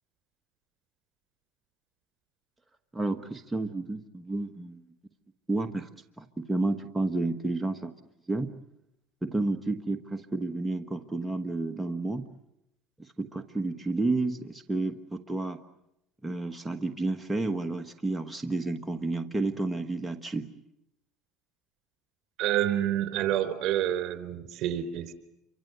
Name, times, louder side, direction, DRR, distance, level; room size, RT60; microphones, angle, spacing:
voice 1, 2.9-4.8 5.5-5.9 6.2-7.9 8.3-8.5 9.2-12.3 13.0-15.6 16.2-20.5, right 2 dB, 10° right, 5 dB, 1.5 m, -31 dB
voice 2, 22.4-25.1, right 12 dB, 60° right, 11 dB, 3.9 m, -28 dB
29.0 x 25.0 x 8.2 m, 0.84 s
supercardioid pair, 105°, 0 cm